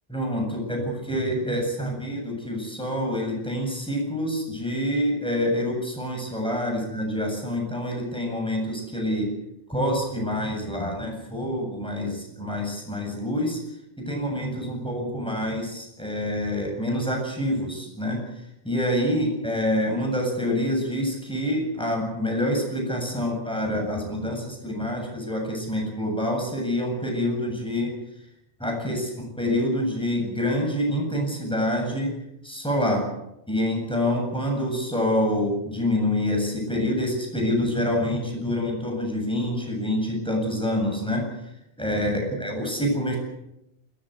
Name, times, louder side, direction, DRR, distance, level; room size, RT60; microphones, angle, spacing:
voice 1, 0.1-9.3 9.7-13.6 14.0-18.2 18.6-27.9 28.6-32.2 32.4-33.1 33.5-41.5 41.8-43.2, left 1 dB, 5° left, 1 dB, 7.9 m, -26 dB
22.0 x 18.5 x 8.0 m, 0.83 s
omnidirectional pair, 1.1 m